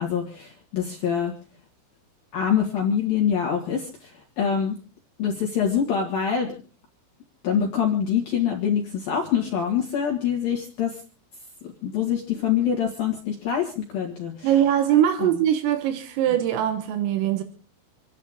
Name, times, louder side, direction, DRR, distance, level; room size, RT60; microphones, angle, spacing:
voice 1, 0.0-1.3 2.3-4.7 5.2-6.6 7.4-11.0 11.8-14.5 15.2-15.4, left 8 dB, 55° left, 0 dB, 3.1 m, -25 dB
voice 2, 14.4-17.4, right 11 dB, 85° right, 7 dB, 3.8 m, -22 dB
28.5 x 10.5 x 3.6 m, 0.38 s
omnidirectional pair, 5.8 m